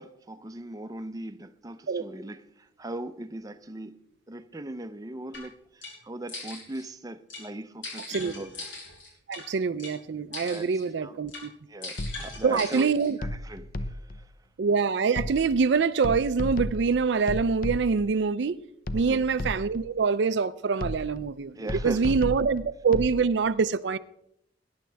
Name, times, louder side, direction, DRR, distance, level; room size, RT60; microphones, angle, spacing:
voice 1, 0.0-4.0 4.3-8.6 10.4-10.7 11.0-11.2 11.7-14.3 18.9-19.2 21.5-22.5, right 1 dB, 20° right, 0.6 m, -40 dB
sound 1, 5.3-5.4 5.8-5.9 6.3-6.8 7.3-7.4 7.8-9.4 9.8-9.9 10.3-10.9 11.3-11.4 11.8-13.1, left 3 dB, 90° left, 6.4 m, -40 dB
voice 2, 9.3-11.5 12.4-13.2 14.6-18.6 18.9-21.5 21.8-24.0, right 5 dB, 65° right, 0.4 m, -25 dB
sound 2, 12.0-12.5 13.2-14.3 15.2-15.7 16.0-18.2 18.9-19.9 20.8-21.3 21.7-23.2, left 1 dB, 50° left, 0.8 m, -34 dB
21.0 x 10.5 x 3.4 m
head